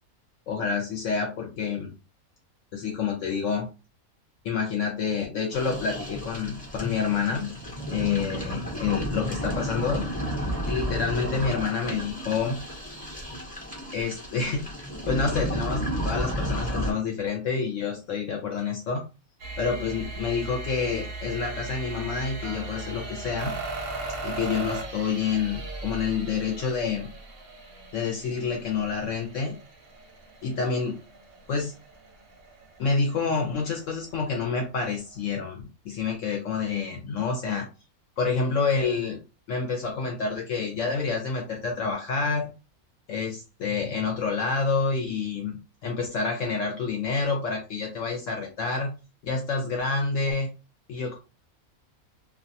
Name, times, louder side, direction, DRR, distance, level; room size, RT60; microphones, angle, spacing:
voice 1, 0.5-1.9 2.7-3.6 4.4-7.5 7.9-10.0 10.6-12.6 13.9-19.0 19.6-23.5 24.2-27.1 27.9-29.5 30.4-31.0 31.5-31.7 32.8-37.6 38.2-39.2 39.5-42.5 43.1-45.6 45.8-48.9 49.2-50.5 50.9-51.2, left 5 dB, 65° left, 2 dB, 0.9 m, -28 dB
sound 1, 5.5-16.9, equal, 10° left, 0.6 m, -32 dB
sound 2, 19.4-34.4 35.0-35.1, right 3 dB, 55° right, 0.7 m, -38 dB
2.5 x 2.2 x 2.7 m, 0.30 s
omnidirectional pair, 1.5 m